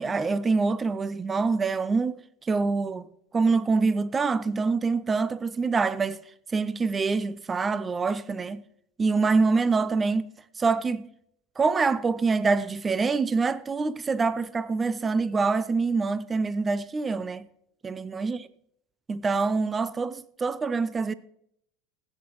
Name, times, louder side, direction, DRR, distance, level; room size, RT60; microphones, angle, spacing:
voice 1, 0.0-3.1 3.3-6.2 6.5-8.6 9.0-10.3 10.6-11.1 11.6-17.5 17.8-18.4 19.1-21.1, right 4 dB, 20° right, 0.5 m, -25 dB
16.0 x 8.6 x 3.0 m
supercardioid pair, 125°, 0 cm